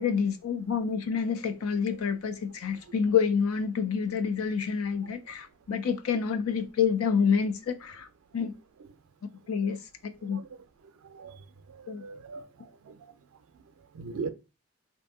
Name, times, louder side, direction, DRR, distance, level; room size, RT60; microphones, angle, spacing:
voice 1, 0.0-8.1 8.3-8.5 9.5-10.4 11.9-12.0, left 6 dB, 90° left, 0.5 m, -28 dB
voice 2, 11.7-12.5 12.9-13.1 13.9-14.3, right 4 dB, 85° right, 0.4 m, -39 dB
2.6 x 2.6 x 3.6 m
head